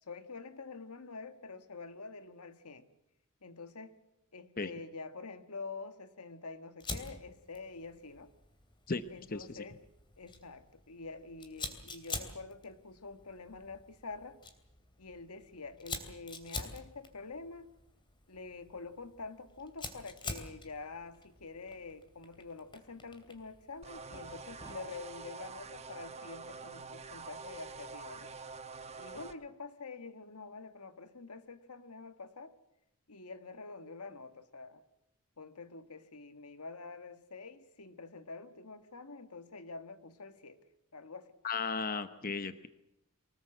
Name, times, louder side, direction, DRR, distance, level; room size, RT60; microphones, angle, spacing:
voice 1, 0.0-2.9 3.4-3.9 4.3-8.3 9.1-9.8 10.2-14.4 15.0-17.7 18.3-28.3 29.0-32.5 33.1-34.8 35.4-40.6 40.9-41.3, left 4 dB, 85° left, 9 dB, 1.7 m, -47 dB
Fire, 6.8-25.0, left 3 dB, 20° left, 2.9 m, -47 dB
voice 2, 9.3-9.6 41.4-42.7, left 4 dB, 40° left, 11 dB, 0.9 m, -35 dB
sound 1, 23.8-29.3, right 4 dB, 30° right, 1.1 m, -46 dB
24.5 x 20.0 x 7.8 m, 0.82 s
head